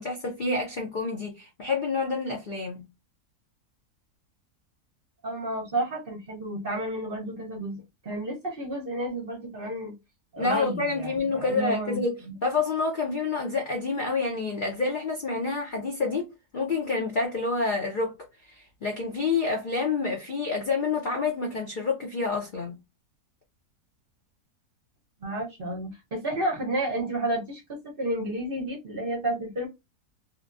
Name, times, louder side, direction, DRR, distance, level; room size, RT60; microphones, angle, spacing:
voice 1, 0.0-2.9 10.4-12.1 12.4-18.1 18.4-22.8, left 4 dB, 65° left, 0.5 m, -28 dB
voice 2, 5.2-9.9 10.3-12.3 25.2-29.7, right 1 dB, 45° right, 0.8 m, -31 dB
2.9 x 2.1 x 2.5 m
omnidirectional pair, 1.7 m